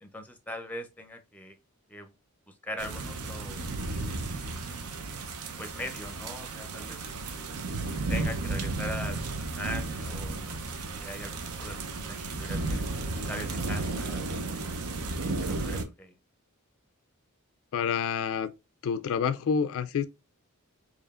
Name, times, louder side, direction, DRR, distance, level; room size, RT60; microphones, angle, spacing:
voice 1, 0.0-1.6 1.9-2.1 2.5-3.7 4.0-4.8 5.6-7.3 8.1-12.8 13.2-14.4 15.2-16.1, left 1 dB, 5° left, 0.5 m, -41 dB
sound 1, 2.8-15.8, right 3 dB, 85° right, 0.6 m, -33 dB
voice 2, 17.7-18.5 18.8-20.0, left 6 dB, 65° left, 0.3 m, -28 dB
4.8 x 2.7 x 2.3 m
head